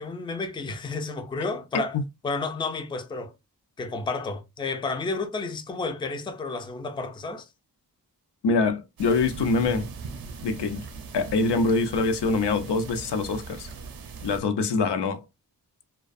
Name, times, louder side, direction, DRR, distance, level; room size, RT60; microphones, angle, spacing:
voice 1, 0.0-2.0 2.2-3.3 3.8-7.5, left 3 dB, 15° left, 0.3 m, -31 dB
voice 2, 8.4-9.9 10.4-10.9 11.1-13.7 14.2-15.2, left 3 dB, 80° left, 0.5 m, -24 dB
sound 1, 9.0-14.4, right 5 dB, 60° right, 0.5 m, -39 dB
2.3 x 2.2 x 2.5 m
wide cardioid pair, 90°, 41 cm